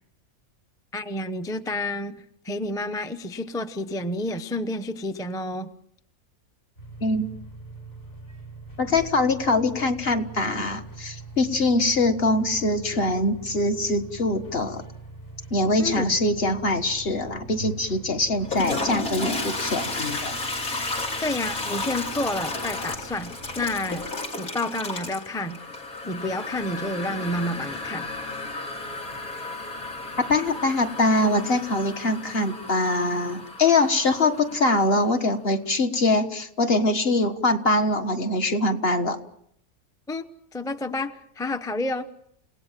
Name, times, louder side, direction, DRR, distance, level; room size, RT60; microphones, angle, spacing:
voice 1, 0.9-2.2 2.4-5.7 15.8-16.2 21.2-24.1 24.4-25.6 26.0-28.1 40.1-40.2 40.5-42.1, left 1 dB, 5° left, 8 dB, 0.7 m, -29 dB
sound 1, 6.8-24.1, right 2 dB, 65° left, 6.4 m, -43 dB
voice 2, 8.8-14.8 15.5-20.4 30.2-39.2, left 2 dB, 45° left, 6 dB, 1.7 m, -23 dB
Toilet flush, 18.3-35.1, left 3 dB, 85° left, 3.7 m, -33 dB
29.5 x 18.0 x 7.5 m, 0.71 s
omnidirectional pair, 1.5 m